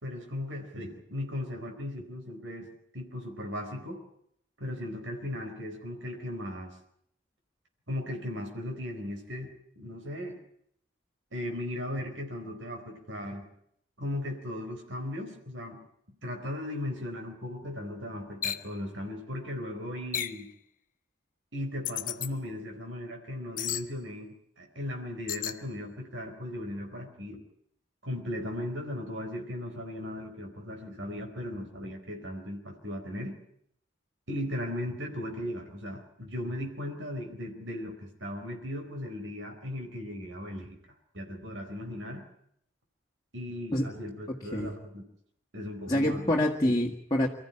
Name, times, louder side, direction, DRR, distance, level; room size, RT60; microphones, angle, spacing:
voice 1, 0.0-4.0 4.6-6.8 7.9-10.4 11.3-13.5 14.0-15.8 16.2-20.5 21.5-27.4 28.0-33.3 34.3-40.8 41.1-42.2 43.3-45.0 45.5-46.3 46.6-46.7, left 1 dB, 75° right, 3 dB, 4.2 m, -37 dB
sound 1, 18.4-18.7 20.1-20.4 21.8-22.3 23.6-23.9 25.3-25.6, left 11 dB, 45° left, 0.9 m, -33 dB
voice 2, 45.9-47.3, left 1 dB, 20° left, -1 dB, 1.9 m, -26 dB
25.5 x 14.5 x 10.0 m, 0.72 s
head